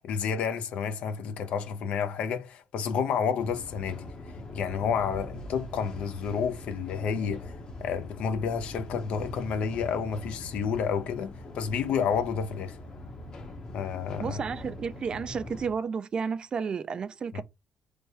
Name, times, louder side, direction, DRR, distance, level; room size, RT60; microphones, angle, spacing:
voice 1, 0.0-12.8 13.7-14.4 17.3-17.4, left 6 dB, 70° left, 0.6 m, -30 dB
sound 1, 3.4-15.7, left 1 dB, 40° left, 1.0 m, -42 dB
voice 2, 14.2-17.4, right 6 dB, 40° right, 0.3 m, -32 dB
3.3 x 2.2 x 4.1 m
cardioid pair, 95°, 2 cm